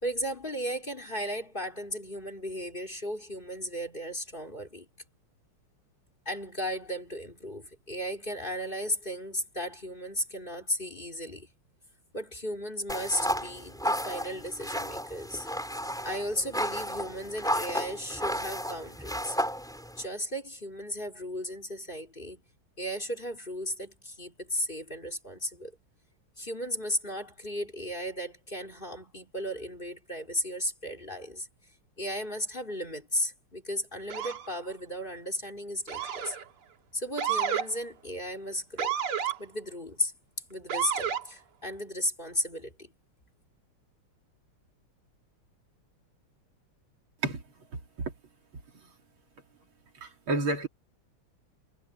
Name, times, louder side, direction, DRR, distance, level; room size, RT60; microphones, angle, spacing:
voice 1, 0.0-4.9 6.3-11.5 12.1-15.5 16.0-19.4 20.0-22.4 22.8-25.7 26.4-31.5 32.0-36.4 36.9-39.0 39.4-40.1 40.5-42.9, equal, 20° left, 3.8 m, -35 dB
sound 1, 12.9-20.1, equal, ahead, 5.2 m, -33 dB
Motor vehicle (road) / Siren, 34.1-34.5 35.9-36.4 37.2-37.7 38.8-39.4 40.7-41.2, right 8 dB, 90° right, 2.5 m, -30 dB
voice 2, 47.2-48.1 48.8-48.9 49.9-50.7, right 2 dB, 70° right, 3.4 m, -32 dB
omnidirectional pair, 2.4 m